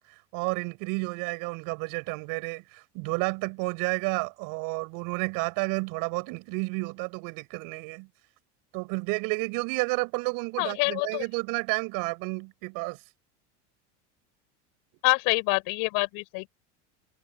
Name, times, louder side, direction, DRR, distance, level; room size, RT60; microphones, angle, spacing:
voice 1, 0.3-8.1 8.7-13.0, right 29 dB, 65° right, 7.9 m, -31 dB
voice 2, 10.6-11.2 15.0-16.5, left 30 dB, 65° left, 7.6 m, -26 dB
supercardioid pair, 115°, 36 cm